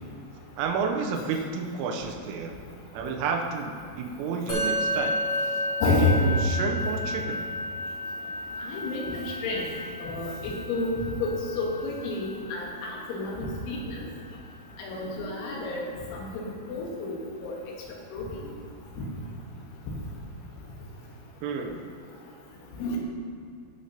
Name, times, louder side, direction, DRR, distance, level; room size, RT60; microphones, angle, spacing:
voice 1, 0.6-2.5 2.9-5.2 5.9-7.4 21.4-21.8, right 5 dB, 85° right, 2 dB, 3.3 m, -30 dB
Musical instrument, 4.5-14.0, left 1 dB, 50° left, 1.5 m, -32 dB
voice 2, 5.8-6.2 8.7-9.7 10.0-10.9 11.2-14.0 14.8-15.9 16.1-17.5 18.1-18.3 19.0-19.1 22.8-23.0, left 3 dB, 75° left, -2 dB, 3.6 m, -29 dB
16.0 x 6.5 x 2.9 m, 2.4 s
omnidirectional pair, 5.7 m